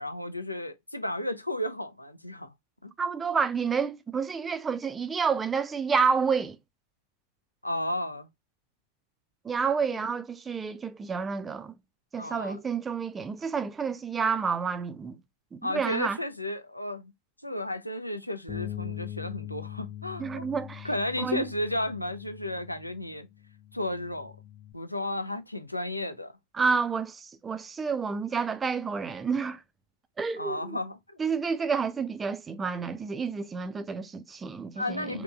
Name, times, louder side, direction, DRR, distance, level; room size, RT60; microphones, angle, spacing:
voice 1, 0.0-2.5 2.8-2.9 7.6-8.3 9.9-10.0 12.2-12.6 15.6-17.1 17.4-20.5 20.8-23.3 23.7-24.5 24.7-26.3 30.4-31.2 34.8-35.2, left 1 dB, 85° left, 0.4 m, -33 dB
voice 2, 3.0-6.6 9.4-11.7 12.1-15.2 15.5-16.2 20.2-20.9 21.2-21.4 26.5-29.6 30.2-30.7 31.2-35.2, right 5 dB, 15° right, 0.4 m, -29 dB
Bass guitar, 18.5-24.7, left 12 dB, 20° left, 0.7 m, -42 dB
3.4 x 2.9 x 2.3 m
figure-of-eight pair, 90°, 0 cm